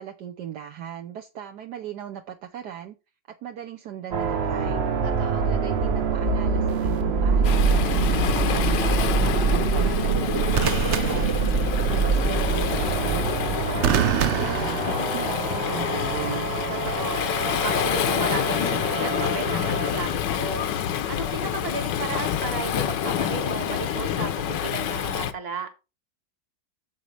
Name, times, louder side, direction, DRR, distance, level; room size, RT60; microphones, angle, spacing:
voice 1, 0.0-3.0 3.4-4.8 5.3-7.8 8.1-11.4 11.8-13.3 13.6-16.5, right 10 dB, 70° right, 1.3 m, -37 dB
sound 1, 4.1-19.9, right 5 dB, 50° right, 0.8 m, -25 dB
voice 2, 5.0-5.5 11.8-12.2 16.8-17.2 17.6-20.7 21.1-25.7, right 5 dB, 35° right, 1.7 m, -34 dB
sound 2, 6.7-7.0 10.5-12.0 13.8-15.5 16.7-17.0, right 9 dB, 90° right, 0.6 m, -27 dB
Waves surf, 7.4-25.3, left 9 dB, 75° left, 1.4 m, -27 dB
9.3 x 7.1 x 3.3 m
omnidirectional pair, 2.0 m